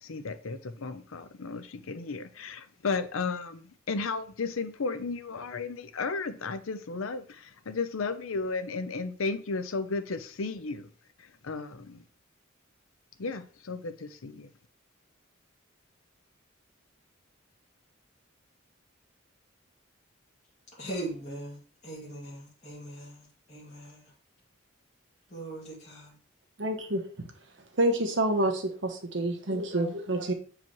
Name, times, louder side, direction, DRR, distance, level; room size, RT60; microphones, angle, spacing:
voice 1, 0.0-10.9 11.2-12.0 13.2-14.5, left 4 dB, 80° left, 0.6 m, -34 dB
voice 2, 20.8-21.6 21.8-24.0 25.3-26.1, right 1 dB, 35° left, 2.3 m, -40 dB
voice 3, 26.6-27.3 27.7-30.3, right 1 dB, 60° right, 1.1 m, -28 dB
7.2 x 4.9 x 3.1 m
head